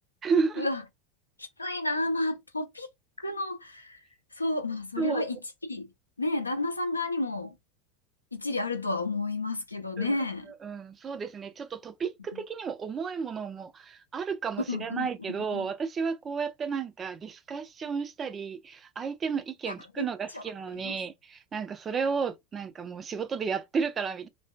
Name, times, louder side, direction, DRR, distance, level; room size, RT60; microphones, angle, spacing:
voice 1, 0.2-0.7 5.0-5.2 10.0-10.2 10.6-24.3, right 5 dB, 25° right, 0.4 m, -32 dB
voice 2, 1.4-2.9 3.2-4.0 4.4-5.4 5.7-5.9 6.2-7.5 8.3-10.5 14.7-15.7 19.7-20.4 20.8-21.0, left 2 dB, 85° left, 0.5 m, -31 dB
3.1 x 2.1 x 2.3 m
figure-of-eight pair, 85°, 0 cm